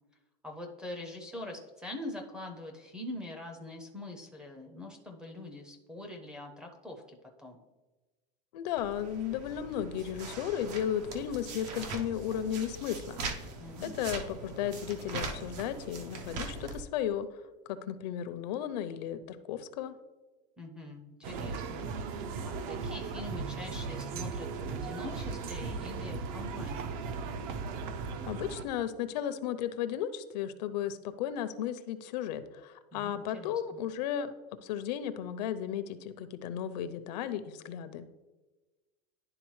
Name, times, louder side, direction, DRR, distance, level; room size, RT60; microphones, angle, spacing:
voice 1, 0.4-7.6 13.6-14.0 20.6-27.0 32.9-33.8, left 2 dB, 5° right, 0 dB, 0.4 m, -44 dB
voice 2, 8.5-13.2 13.8-17.3 17.7-20.0 28.3-34.3 34.6-38.1, left 10 dB, 80° left, 12 dB, 0.6 m, -34 dB
sound 1, 8.8-16.8, right 3 dB, 75° right, 0.9 m, -41 dB
sound 2, 21.2-28.7, right 5 dB, 55° right, 0.5 m, -37 dB
11.0 x 3.7 x 3.1 m, 1.2 s
supercardioid pair, 170°, 21 cm